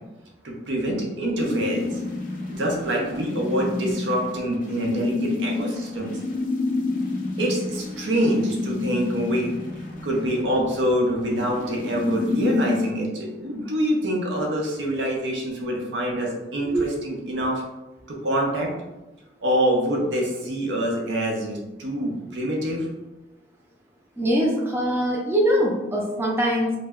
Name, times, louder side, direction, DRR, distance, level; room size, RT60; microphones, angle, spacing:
voice 1, 0.4-2.0 2.5-6.2 7.4-9.5 10.0-17.6 18.1-18.7 19.4-22.9, equal, 85° right, -1 dB, 0.6 m, -25 dB
sound 1, 1.4-12.9, left 3 dB, 50° left, 0.5 m, -29 dB
voice 2, 24.2-26.8, equal, 15° right, -3 dB, 0.3 m, -22 dB
2.1 x 2.0 x 3.4 m, 1.0 s
head